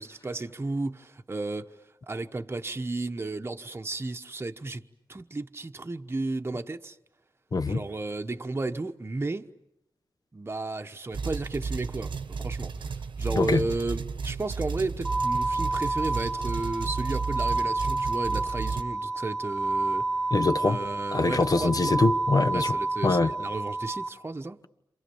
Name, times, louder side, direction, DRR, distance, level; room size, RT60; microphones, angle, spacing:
voice 1, 0.0-1.8 2.1-4.8 5.1-7.0 7.6-9.5 10.3-20.0 20.6-22.0 22.5-24.6, right 2 dB, 30° right, 1.1 m, -33 dB
voice 2, 7.5-7.8 13.3-13.7 20.3-20.8 21.1-22.8 23.0-23.3, left 3 dB, 50° left, 1.3 m, -24 dB
sound 1, 11.1-18.8, right 5 dB, 75° right, 1.2 m, -33 dB
sound 2, 15.0-24.1, right 2 dB, 15° left, 2.8 m, -29 dB
30.0 x 27.5 x 7.1 m
wide cardioid pair, 85°, 8 cm